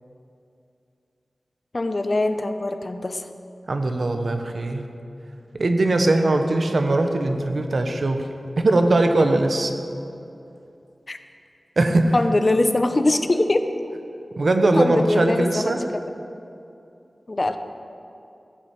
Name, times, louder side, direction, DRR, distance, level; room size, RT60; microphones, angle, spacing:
voice 1, 1.7-3.3 11.1-11.2 12.1-13.7 14.7-15.8 17.3-17.6, left 2 dB, 40° left, 8 dB, 0.7 m, -22 dB
voice 2, 3.7-4.9 5.5-8.3 8.6-9.7 11.8-12.1 14.4-15.8, right 2 dB, 65° right, 6 dB, 1.0 m, -20 dB
14.5 x 6.0 x 8.3 m, 2.7 s
wide cardioid pair, 75°, 0 cm